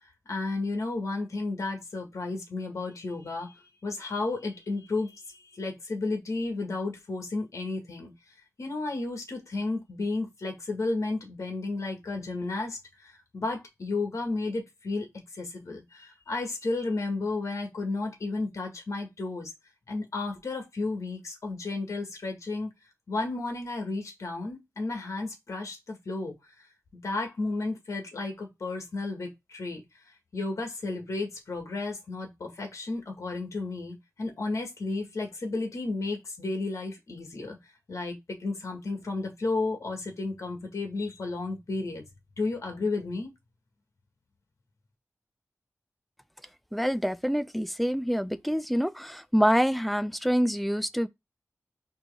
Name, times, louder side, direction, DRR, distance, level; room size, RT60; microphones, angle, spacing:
voice 1, 0.3-8.1 8.6-15.1 15.3-19.5 19.9-22.7 23.1-26.3 27.0-29.8 30.3-37.6 37.9-42.0 42.4-43.3, left 3 dB, 70° left, 1.5 m, -33 dB
voice 2, 46.7-51.1, equal, ahead, 0.3 m, -26 dB
4.5 x 3.0 x 3.3 m
wide cardioid pair, 90°, 5 cm